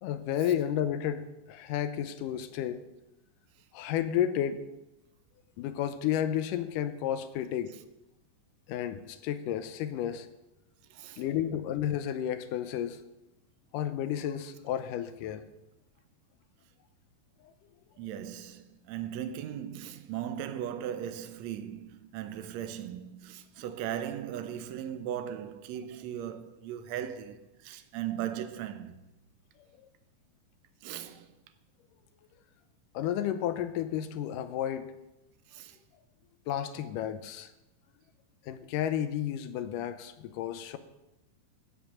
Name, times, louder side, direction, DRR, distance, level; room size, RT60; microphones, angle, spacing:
voice 1, 0.0-2.8 3.7-4.6 5.6-7.7 8.7-10.3 11.2-13.0 13.7-15.4 32.9-34.9 36.5-37.5 38.5-40.8, left 10 dB, 85° left, 2.2 m, -32 dB
voice 2, 10.9-11.3 18.0-29.0 30.8-31.3 35.5-35.8, right 10 dB, 75° right, 1.8 m, -38 dB
16.5 x 5.5 x 6.3 m
omnidirectional pair, 3.8 m